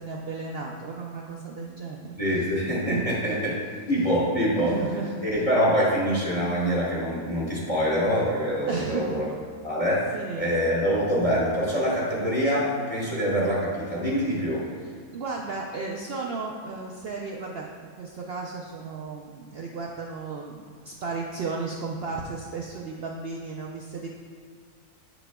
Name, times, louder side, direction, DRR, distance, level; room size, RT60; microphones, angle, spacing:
voice 1, 0.0-2.5 2.9-3.4 4.6-5.5 8.7-9.2 10.1-10.6 14.8-17.7 18.0-24.1, right 4 dB, 75° right, -1 dB, 0.5 m, -34 dB
voice 2, 2.2-3.6 3.9-4.8 5.2-9.3 9.6-14.6, equal, 25° left, -6 dB, 1.2 m, -25 dB
7.8 x 6.1 x 2.2 m, 2.1 s
omnidirectional pair, 1.5 m